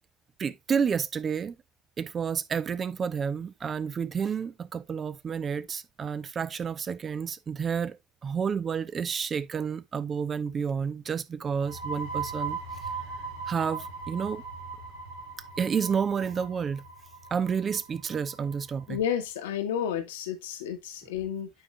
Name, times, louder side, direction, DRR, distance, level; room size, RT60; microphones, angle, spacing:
voice 1, 0.4-1.6 2.0-12.6 13.5-14.4 15.6-16.8 17.3-19.0, right 6 dB, 35° right, 0.9 m, -30 dB
sound 1, 11.5-19.0, right 4 dB, 80° right, 3.5 m, -39 dB
voice 2, 18.9-21.5, left 9 dB, 75° left, 1.5 m, -31 dB
9.0 x 5.3 x 3.2 m
figure-of-eight pair, 60°, 0 cm